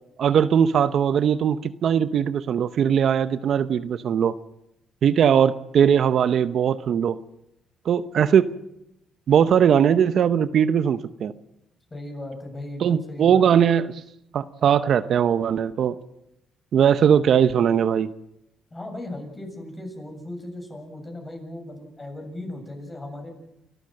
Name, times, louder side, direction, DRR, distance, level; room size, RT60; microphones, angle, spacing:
voice 1, 0.2-4.3 5.0-7.2 7.8-8.5 9.3-11.3 12.8-14.0 14.3-16.0 16.7-18.1, right 8 dB, 65° right, 13 dB, 0.8 m, -20 dB
voice 2, 11.9-13.6 18.7-23.3, left 1 dB, 20° left, 4 dB, 7.2 m, -37 dB
29.0 x 13.5 x 7.6 m, 0.84 s
cardioid pair, 90°, 0 cm